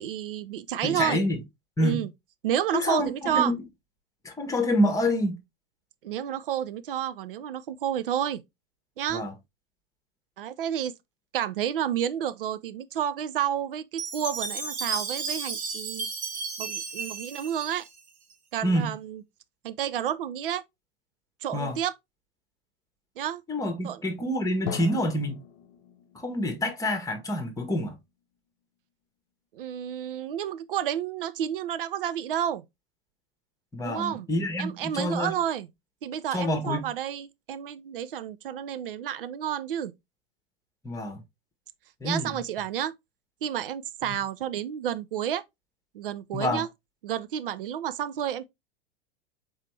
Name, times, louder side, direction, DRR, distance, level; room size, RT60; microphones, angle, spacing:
voice 1, 0.0-1.2 1.8-2.1 2.4-3.5 6.0-8.4 9.0-9.3 10.4-10.9 11.3-16.1 16.6-17.8 18.5-19.2 19.6-20.6 21.4-21.9 23.2-23.4 23.8-24.0 29.5-32.6 33.8-34.3 34.6-35.7 36.0-39.9 42.0-42.9 43.4-45.4 45.9-46.7 47.0-48.5, right 10 dB, 65° right, 0.6 m, -30 dB
voice 2, 0.8-1.4 1.8-2.1 2.7-3.6 4.2-5.4 9.1-9.3 18.6-18.9 21.5-21.8 23.5-25.4 26.1-27.9 33.7-35.3 36.3-36.9 40.8-41.2 42.0-42.3 44.1-44.2 46.3-46.6, left 1 dB, 10° left, 1.3 m, -27 dB
Chime, 14.0-18.3, right 4 dB, 25° right, 1.2 m, -33 dB
Drum, 24.7-28.4, left 9 dB, 50° left, 0.6 m, -42 dB
4.5 x 3.3 x 3.1 m
figure-of-eight pair, 90°, 29 cm